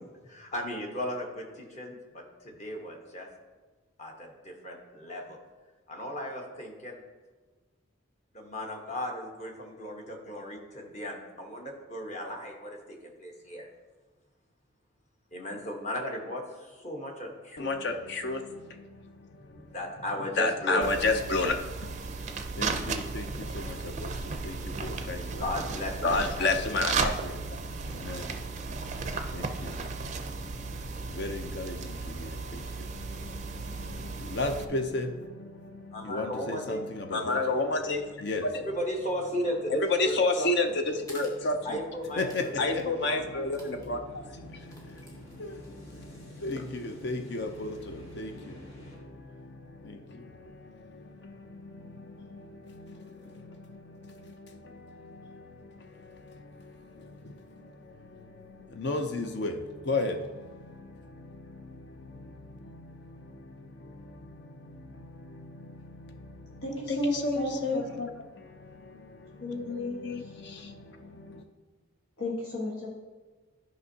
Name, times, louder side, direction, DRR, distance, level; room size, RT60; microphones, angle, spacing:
voice 1, 0.2-3.3 4.0-5.4 5.9-7.0 8.3-13.7 15.3-17.7 19.5-20.9 25.4-26.7 35.9-36.9 38.6-40.7 41.6-43.2, equal, 35° left, 1 dB, 1.1 m, -36 dB
voice 2, 17.6-19.8 20.4-25.4 26.0-38.7 39.8-41.8 42.2-71.4, left 2 dB, 50° left, 6 dB, 0.5 m, -34 dB
sound 1, 20.8-34.7, right 4 dB, 35° right, 0.4 m, -35 dB
sound 2, 41.0-41.4 42.3-42.5 42.8-42.9 43.5-43.9 44.5-45.7, equal, 15° left, 1.3 m, -51 dB
sound 3, 41.4-49.0, equal, 70° left, 1.9 m, -51 dB
voice 3, 66.6-67.8 69.4-70.0 70.2-70.3 72.2-72.9, equal, 85° left, -4 dB, 1.3 m, -33 dB
12.0 x 5.3 x 2.8 m, 1.3 s
head